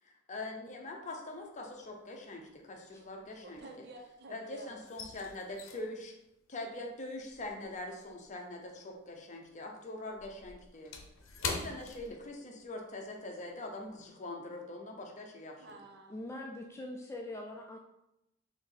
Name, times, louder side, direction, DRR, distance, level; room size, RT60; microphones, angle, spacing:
voice 1, 0.0-3.6 4.3-6.1 6.5-11.0 11.6-15.7, left 2 dB, 35° left, 2 dB, 0.7 m, -43 dB
sound 1, 1.4-2.0 2.2-4.2 4.5-9.2 9.5-12.8 13.1-13.3 13.7-14.0, left 4 dB, 75° left, 0.7 m, -44 dB
voice 2, 3.4-4.8 15.6-16.2, right 1 dB, 55° right, 2 dB, 0.7 m, -50 dB
voice 3, 16.1-17.8, left 1 dB, 15° left, 1 dB, 0.4 m, -43 dB
4.5 x 2.9 x 3.8 m, 0.86 s
head